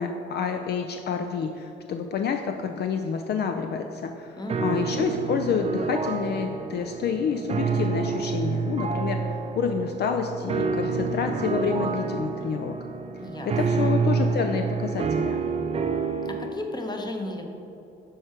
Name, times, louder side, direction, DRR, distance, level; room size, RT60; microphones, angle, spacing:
voice 1, 0.0-12.7 13.5-15.4, left 6 dB, 55° left, 5 dB, 0.4 m, -28 dB
voice 2, 4.4-5.1 13.2-14.0 16.2-17.5, left 2 dB, 20° left, 3 dB, 0.8 m, -35 dB
sound 1, 4.5-16.5, right 5 dB, 30° right, 0.4 m, -28 dB
6.4 x 4.5 x 4.4 m, 2.9 s
cardioid pair, 90°, 20 cm